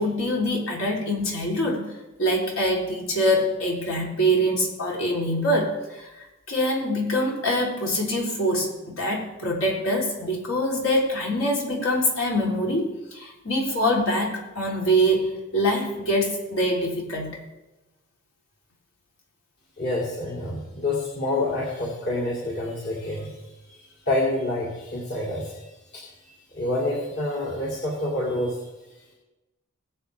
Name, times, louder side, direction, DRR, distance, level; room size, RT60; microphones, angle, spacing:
voice 1, 0.0-1.9 2.2-6.1 6.5-17.3, equal, 85° left, -3 dB, 3.8 m, -24 dB
voice 2, 19.8-23.4 23.7-28.6, left 2 dB, 55° left, -5 dB, 2.9 m, -28 dB
22.0 x 7.8 x 3.5 m, 1.1 s
head